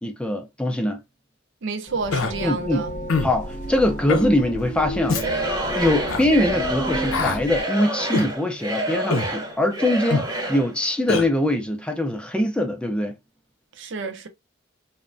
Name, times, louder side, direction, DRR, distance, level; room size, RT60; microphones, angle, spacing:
voice 1, 0.0-1.0 2.4-2.8 3.2-5.2 5.7-13.1, left 1 dB, 5° left, 0.3 m, -23 dB
voice 2, 1.6-2.9 13.8-14.3, right 4 dB, 60° right, 0.5 m, -29 dB
sound 1, 1.9-7.6, equal, 40° left, 0.7 m, -32 dB
Human voice, 2.1-2.3 3.1-3.3 4.1-4.3 5.1-5.3 6.1-6.2 7.1-7.4 8.1-8.3 9.1-9.3 10.1-10.3 11.1-11.3, left 3 dB, 80° left, 0.5 m, -23 dB
Singing / Crowd, 5.1-10.7, right 1 dB, 20° right, 0.7 m, -28 dB
3.2 x 2.1 x 2.4 m
head